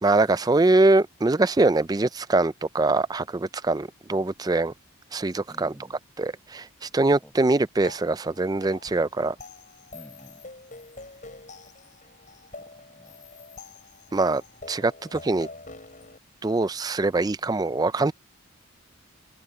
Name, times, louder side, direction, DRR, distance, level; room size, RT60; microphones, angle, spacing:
voice 1, 0.0-4.7 5.1-5.7 6.2-9.4 14.1-14.4 14.7-15.5 16.4-18.1, right 2 dB, 20° right, 0.3 m, -23 dB
voice 2, 5.5-6.0 7.2-7.6 9.9-10.4 12.6-13.2, equal, 5° left, 6.2 m, -50 dB
sound 1, 7.8-16.2, left 3 dB, 35° left, 7.2 m, -46 dB
open air
head